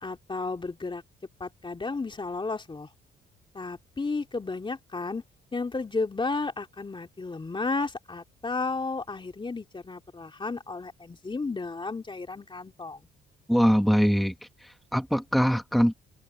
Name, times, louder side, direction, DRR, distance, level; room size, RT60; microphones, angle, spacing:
voice 1, 0.0-1.0 1.4-2.9 3.5-5.2 5.5-13.0, left 3 dB, 25° left, 2.9 m, -33 dB
voice 2, 13.5-14.3 14.6-15.9, equal, ahead, 1.8 m, -22 dB
open air
cardioid pair, 90°, 20 cm